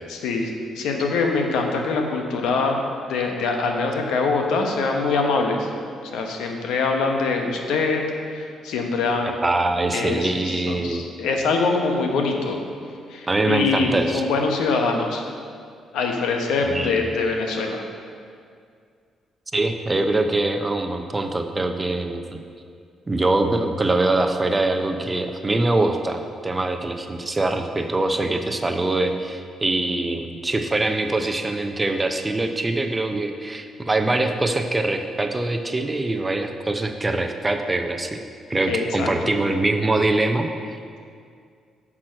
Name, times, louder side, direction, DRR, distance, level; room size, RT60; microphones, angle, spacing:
voice 1, 0.1-2.8 3.1-5.7 6.1-8.0 8.3-9.4 9.9-12.6 13.1-15.2 15.9-17.8 38.7-39.3, left 4 dB, 85° left, 3 dB, 0.9 m, -24 dB
voice 2, 9.4-11.0 13.3-14.2 16.6-17.1 19.5-22.4 23.1-38.2 38.5-40.8, right 2 dB, 20° right, 5 dB, 0.6 m, -23 dB
6.0 x 6.0 x 6.3 m, 2.2 s
cardioid pair, 90°, 0 cm